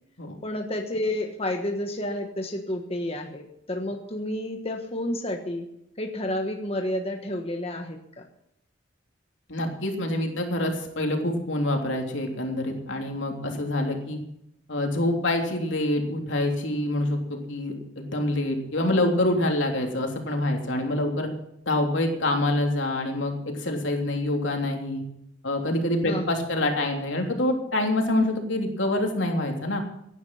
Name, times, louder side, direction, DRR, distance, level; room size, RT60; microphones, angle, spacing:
voice 1, 0.4-5.7 6.0-8.2 26.0-26.4, left 1 dB, 30° left, 3 dB, 1.3 m, -30 dB
voice 2, 9.5-14.2 14.7-21.3 21.6-25.0 25.4-29.8, left 1 dB, 75° left, 2 dB, 3.3 m, -26 dB
16.5 x 11.0 x 5.7 m, 0.79 s
head